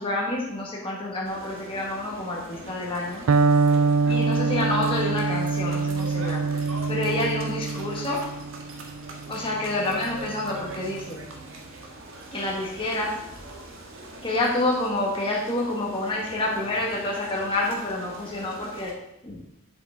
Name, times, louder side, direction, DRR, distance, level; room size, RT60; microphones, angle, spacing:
voice 1, 0.0-3.2 4.1-6.4 6.9-8.3 9.3-11.2 12.3-13.2 14.2-19.0 19.2-19.4, left 2 dB, 25° left, -3 dB, 1.5 m, -28 dB
sound 1, 1.3-18.9, right 2 dB, 60° right, 1.3 m, -43 dB
Electric guitar, 3.3-11.1, right 4 dB, 85° right, 0.4 m, -25 dB
7.8 x 7.7 x 3.7 m, 0.84 s
head